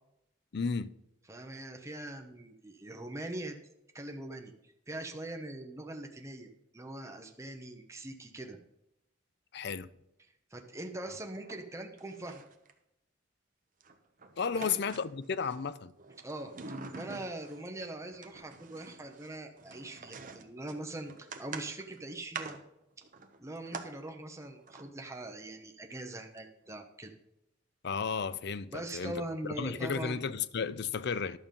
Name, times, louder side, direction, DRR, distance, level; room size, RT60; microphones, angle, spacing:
voice 1, 0.5-0.9 9.5-9.9 14.4-15.9 27.8-29.2 29.6-31.4, left 5 dB, 60° left, 0.5 m, -33 dB
voice 2, 1.3-3.6 3.9-6.5 6.7-8.6 10.5-12.4 14.5-14.8 16.2-16.5 16.9-22.6 23.4-27.1 28.7-30.2, right 1 dB, 15° right, 1.0 m, -42 dB
sound 1, 11.1-11.7 12.0-12.7 13.8-15.6 16.0-17.7 18.1-23.9 24.6-24.9 26.4-26.5 26.7-26.8, right 4 dB, 45° right, 1.0 m, -46 dB
11.5 x 7.1 x 5.3 m
head